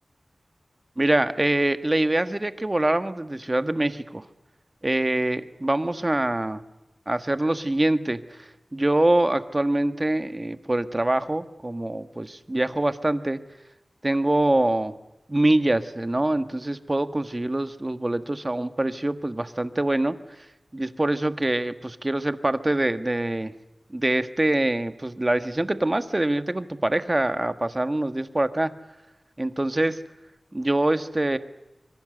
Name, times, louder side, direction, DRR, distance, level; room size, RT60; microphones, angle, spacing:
voice 1, 1.0-4.2 4.8-6.6 7.1-13.4 14.0-14.9 15.3-20.1 20.7-23.5 23.9-28.7 29.4-30.0 30.5-31.4, right 1 dB, 25° right, 10 dB, 1.5 m, -24 dB
26.0 x 23.5 x 7.9 m, 0.97 s
wide cardioid pair, 85°, 0 cm